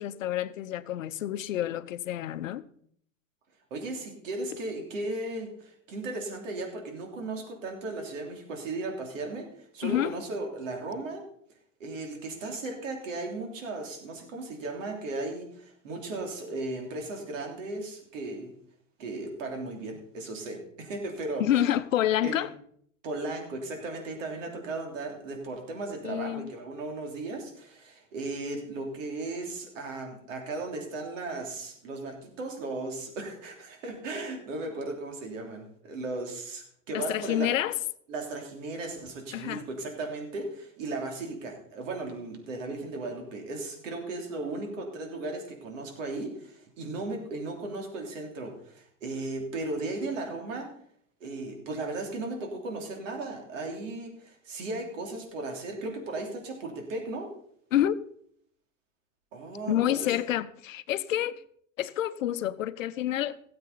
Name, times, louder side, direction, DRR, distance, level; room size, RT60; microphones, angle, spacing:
voice 1, 0.0-2.6 9.8-10.2 21.4-22.5 26.0-26.5 36.9-37.7 39.3-39.6 57.7-58.0 59.7-61.4 61.8-63.4, left 12 dB, 75° left, 0.7 m, -28 dB
voice 2, 3.7-11.2 11.8-18.5 19.0-21.6 22.2-22.5 23.0-37.5 38.1-50.7 51.2-57.3 59.3-60.1, right 2 dB, 70° right, 3.3 m, -36 dB
17.0 x 7.8 x 4.1 m
hypercardioid pair, 85°, 39 cm